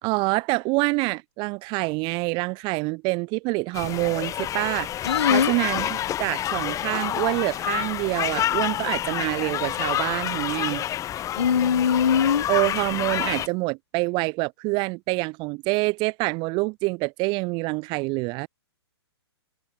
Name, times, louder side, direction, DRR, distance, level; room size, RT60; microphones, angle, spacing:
voice 1, 0.0-10.8 12.5-18.5, right 27 dB, 35° right, 5.3 m, -26 dB
sound 1, 3.7-13.5, left 12 dB, 25° left, 5.3 m, -28 dB
voice 2, 5.1-5.5 11.4-12.5, left 7 dB, 75° left, 3.8 m, -21 dB
hypercardioid pair, 130°, 14 cm